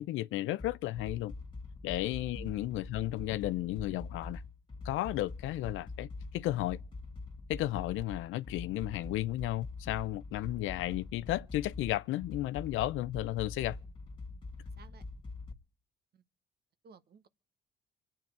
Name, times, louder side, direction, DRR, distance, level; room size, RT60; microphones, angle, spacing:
voice 1, 0.0-1.3 1.8-4.4 4.8-6.8 7.5-13.8, left 15 dB, 90° left, 0.6 m, -33 dB
sound 1, 0.6-15.5, left 3 dB, 25° left, 2.0 m, -44 dB
voice 2, 16.8-17.3, right 6 dB, 55° right, 1.1 m, -55 dB
26.0 x 8.9 x 4.6 m
cardioid pair, 90°, 20 cm